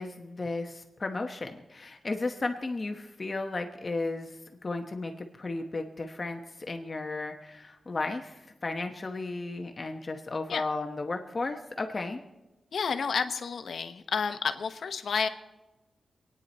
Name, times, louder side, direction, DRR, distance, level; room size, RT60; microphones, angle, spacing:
voice 1, 0.0-4.3 4.6-12.2, left 3 dB, 30° left, 4 dB, 1.0 m, -34 dB
voice 2, 12.7-15.3, left 6 dB, 75° left, 8 dB, 1.0 m, -30 dB
26.0 x 9.8 x 4.3 m, 1.1 s
wide cardioid pair, 165°, 0 cm